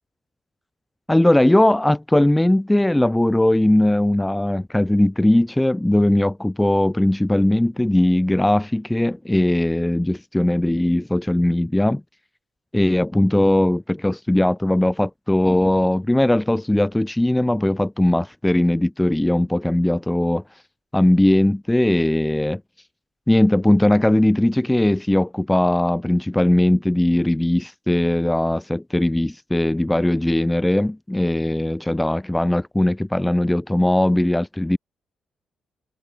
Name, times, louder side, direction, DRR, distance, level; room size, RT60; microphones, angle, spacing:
voice 1, 1.1-12.0 12.7-20.4 20.9-22.6 23.3-34.8, left 1 dB, 10° left, 1.5 m, -19 dB
supercardioid pair, 65°, 0 cm